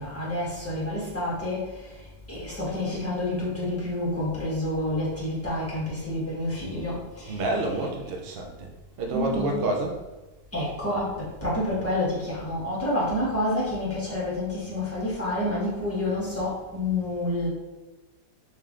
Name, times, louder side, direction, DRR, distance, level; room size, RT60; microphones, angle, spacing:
voice 1, 0.0-7.9 9.1-9.6 10.5-17.5, left 1 dB, 10° left, -7 dB, 1.4 m, -29 dB
voice 2, 7.3-8.7 9.0-10.0, right 2 dB, 70° right, 1 dB, 0.5 m, -28 dB
3.4 x 3.1 x 3.7 m, 1.1 s
omnidirectional pair, 1.7 m